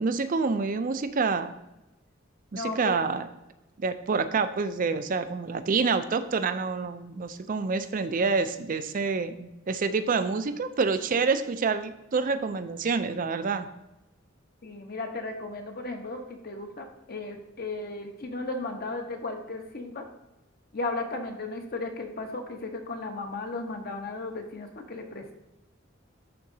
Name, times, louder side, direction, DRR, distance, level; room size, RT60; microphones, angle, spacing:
voice 1, 0.0-1.5 2.5-3.3 3.8-13.7, right 4 dB, 45° right, 11 dB, 0.4 m, -27 dB
voice 2, 2.6-3.0 14.6-20.0 20.7-25.4, left 3 dB, 50° left, 4 dB, 0.9 m, -35 dB
11.0 x 3.9 x 2.7 m, 0.96 s
head